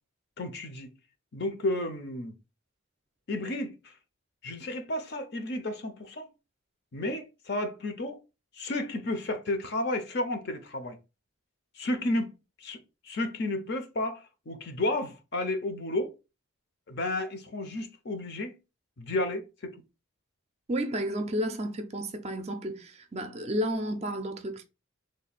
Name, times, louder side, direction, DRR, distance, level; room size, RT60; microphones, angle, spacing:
voice 1, 0.4-0.9 1.3-2.3 3.3-3.9 4.4-6.3 6.9-8.2 8.5-11.0 11.8-12.3 12.6-12.8 13.0-16.1 16.9-18.6 19.0-19.7, left 1 dB, 50° left, 0.6 m, -32 dB
voice 2, 20.7-24.6, equal, 30° right, 0.4 m, -32 dB
3.2 x 2.2 x 4.1 m
head